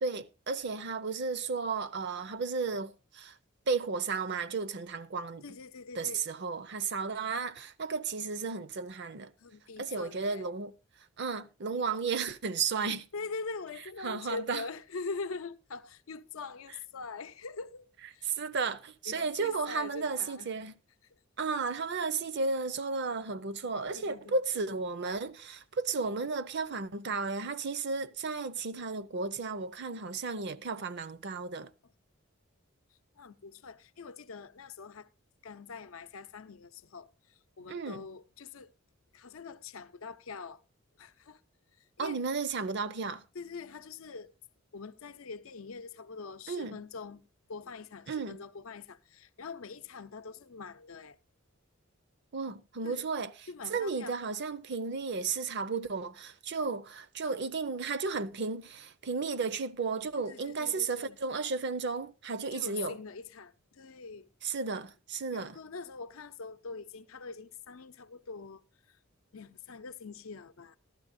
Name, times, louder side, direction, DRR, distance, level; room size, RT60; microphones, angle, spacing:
voice 1, 0.0-3.4 3.7-5.4 6.0-9.3 9.8-10.7 11.2-13.1 14.0-14.6 18.2-20.7 21.4-31.7 37.7-38.0 42.0-43.2 46.5-46.8 48.1-48.4 52.3-63.0 64.4-65.6, right 4 dB, 55° right, 0.6 m, -34 dB
voice 2, 5.4-6.2 9.4-10.4 13.1-18.3 18.6-18.7 19.1-20.5 23.9-24.4 33.2-35.1 35.4-38.7 39.1-40.6 41.0-41.4 42.0-42.2 43.3-44.3 44.7-51.2 52.8-53.1 53.5-54.2 60.3-61.2 62.5-64.3 65.3-69.0 69.3-70.8, left 4 dB, 80° left, 0.6 m, -43 dB
15.5 x 12.0 x 2.6 m
head